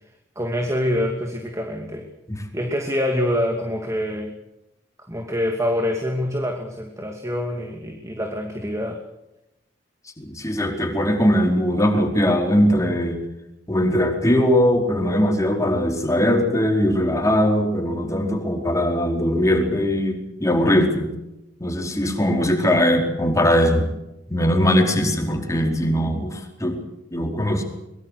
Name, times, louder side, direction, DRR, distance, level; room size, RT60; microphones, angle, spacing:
voice 1, 0.4-2.1 2.5-4.3 5.1-9.0, left 1 dB, 15° right, 3 dB, 2.7 m, -25 dB
voice 2, 10.2-13.2 13.7-21.1 21.6-23.9 24.3-26.8 27.1-27.6, equal, 20° left, 2 dB, 4.7 m, -20 dB
24.0 x 22.5 x 6.6 m, 0.92 s
head